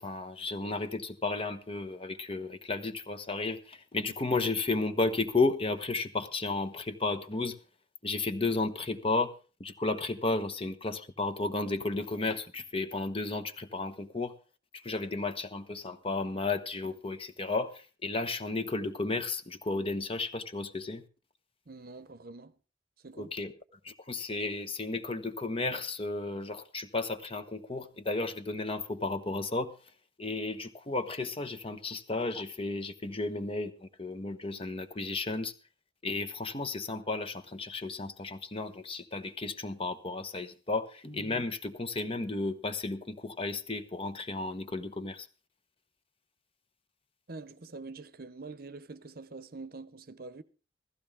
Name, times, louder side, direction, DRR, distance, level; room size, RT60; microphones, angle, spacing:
voice 1, 0.0-7.6 8.0-9.3 9.6-14.3 14.7-21.0 23.2-23.5 23.8-29.7 30.2-35.5 36.0-45.3, left 3 dB, 30° left, 1.1 m, -33 dB
voice 2, 21.7-22.5 23.0-23.3 47.3-50.4, right 3 dB, 55° right, 0.8 m, -45 dB
15.5 x 14.5 x 3.6 m
head